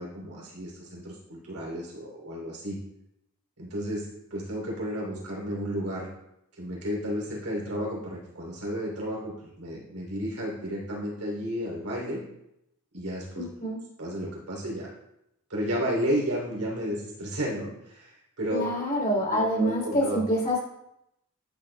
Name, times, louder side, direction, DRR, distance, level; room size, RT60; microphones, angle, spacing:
voice 1, 0.0-2.8 3.6-6.1 6.6-12.2 12.9-13.7 14.0-14.9 15.5-18.7 19.2-20.2, equal, 80° right, -3 dB, 3.0 m, -32 dB
voice 2, 13.3-13.8 18.5-20.7, equal, 40° left, -3 dB, 3.1 m, -26 dB
11.5 x 7.2 x 2.2 m, 0.82 s
head